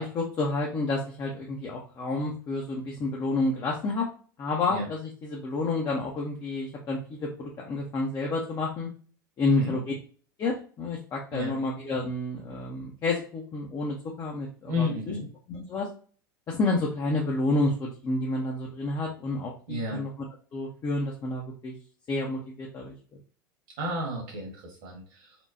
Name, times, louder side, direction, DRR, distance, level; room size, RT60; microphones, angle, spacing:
voice 1, 0.0-4.1 4.4-8.9 9.4-9.9 10.4-15.1 15.5-15.9 16.5-20.1 20.5-21.7 22.1-22.9, left 2 dB, 30° left, -2 dB, 0.8 m, -29 dB
voice 2, 9.4-9.7 11.3-11.6 14.7-15.3 19.7-20.1 23.8-25.4, left 1 dB, 60° right, 0 dB, 1.7 m, -32 dB
4.4 x 2.3 x 2.6 m, 0.42 s
hypercardioid pair, 85°, 12 cm